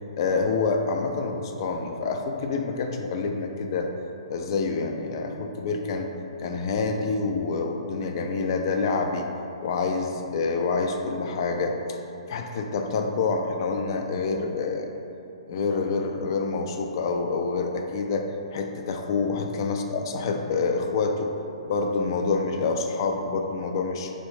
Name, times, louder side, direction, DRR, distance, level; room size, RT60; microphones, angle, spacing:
voice 1, 0.2-3.9 4.3-6.1 6.4-9.3 9.6-12.0 12.3-14.9 15.5-21.3 21.6-24.1, left 4 dB, 45° left, 4 dB, 0.3 m, -27 dB
3.1 x 2.6 x 3.3 m, 2.7 s
hypercardioid pair, 140°, 3 cm